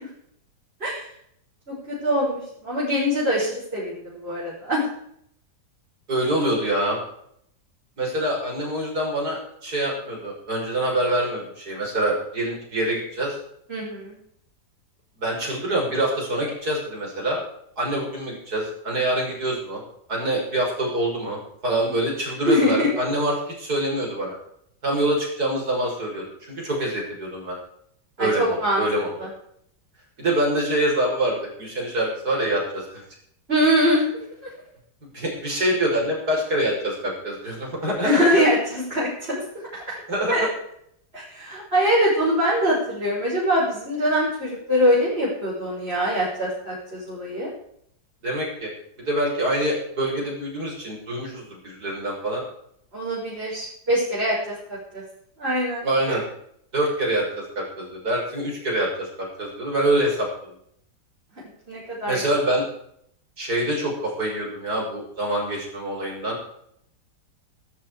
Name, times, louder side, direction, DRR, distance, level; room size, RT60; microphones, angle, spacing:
voice 1, 1.7-4.8 13.7-14.2 22.5-22.9 28.2-28.8 29.2-29.3 33.5-34.0 38.0-40.0 40.3-40.5 41.1-47.5 52.9-55.0 55.4-56.2 61.7-62.2, equal, 30° right, -8 dB, 6.6 m, -23 dB
voice 2, 6.1-7.0 8.0-13.4 15.2-17.4 17.8-19.8 20.1-24.4 24.8-27.6 28.2-29.1 30.2-33.0 35.1-38.4 40.1-40.5 48.2-48.7 49.0-52.4 55.8-56.2 56.7-57.2 57.6-60.3 62.1-62.6 63.4-66.4, right 1 dB, 55° right, -2 dB, 6.7 m, -25 dB
14.0 x 13.5 x 5.0 m, 0.70 s
omnidirectional pair, 2.0 m